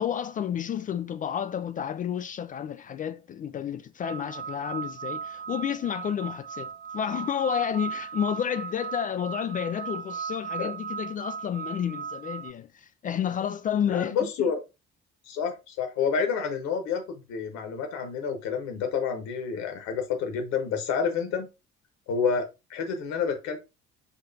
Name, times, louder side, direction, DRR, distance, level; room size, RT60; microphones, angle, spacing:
voice 1, 0.0-14.5, left 9 dB, 25° left, 0.3 m, -31 dB
sound 1, 4.0-12.5, right 7 dB, 40° right, 0.5 m, -37 dB
voice 2, 13.9-14.6 15.3-21.5 22.1-23.6, left 6 dB, 60° left, 1.3 m, -29 dB
6.5 x 2.9 x 2.6 m
figure-of-eight pair, 50°, 31 cm